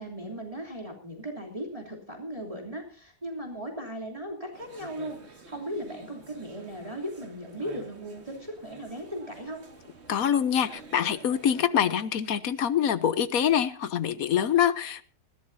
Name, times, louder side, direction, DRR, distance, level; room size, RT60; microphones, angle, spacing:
voice 1, 0.0-9.6, equal, 20° right, 0 dB, 3.2 m, -37 dB
sound 1, 4.5-11.7, right 3 dB, 40° right, 2.2 m, -50 dB
voice 2, 10.1-15.0, left 9 dB, 65° left, 15 dB, 1.2 m, -25 dB
20.0 x 16.0 x 2.7 m, 0.40 s
omnidirectional pair, 1.7 m